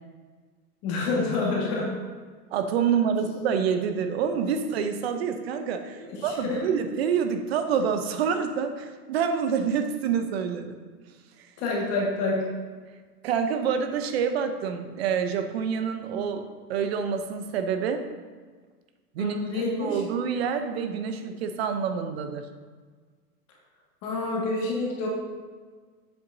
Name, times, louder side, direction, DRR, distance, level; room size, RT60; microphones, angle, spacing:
voice 1, 0.8-1.9 6.0-6.6 11.6-12.4 19.2-20.0 24.0-25.1, left 3 dB, 30° left, -3 dB, 1.6 m, -28 dB
voice 2, 2.5-10.8 11.4-11.5 13.2-18.0 19.1-22.5, right 7 dB, 40° right, 7 dB, 0.6 m, -27 dB
7.9 x 6.8 x 2.6 m, 1.5 s
hypercardioid pair, 145°, 48 cm